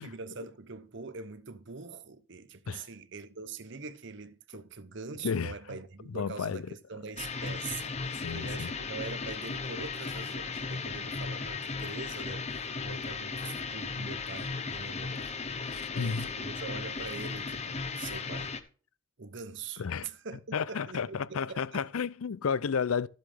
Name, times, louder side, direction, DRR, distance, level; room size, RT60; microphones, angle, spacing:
voice 1, 0.0-12.4 12.8-15.4 15.9-18.6 19.2-21.9, right 4 dB, 55° right, 0.8 m, -43 dB
voice 2, 5.2-5.8 6.1-6.7 8.1-8.7 15.7-16.3 19.8-20.1 20.5-23.1, left 6 dB, 75° left, 0.5 m, -32 dB
sound 1, 7.2-18.6, left 4 dB, 30° left, 0.7 m, -36 dB
12.0 x 7.8 x 3.5 m
head